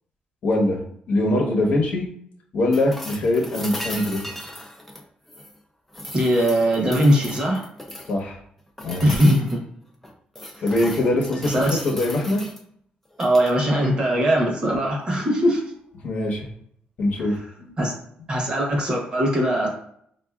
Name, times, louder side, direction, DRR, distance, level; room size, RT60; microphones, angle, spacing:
voice 1, 0.4-0.8 1.1-2.1 2.5-4.2 8.1-8.4 8.8-9.2 10.6-12.4 16.0-16.5 17.0-17.7, left 1 dB, 65° left, 0 dB, 0.9 m, -23 dB
sound 1, 2.7-5.6 5.9-8.2 8.8-9.6 10.0-12.6 13.1-13.6 15.6-15.7, left 1 dB, 10° left, 0.4 m, -37 dB
voice 2, 6.1-7.6 9.0-9.6 11.4-11.8 13.2-15.6 17.3-17.4 17.8-17.9 18.3-19.7, equal, 30° right, -1 dB, 0.9 m, -20 dB
4.5 x 2.4 x 2.3 m, 0.67 s
cardioid pair, 145°, 3 cm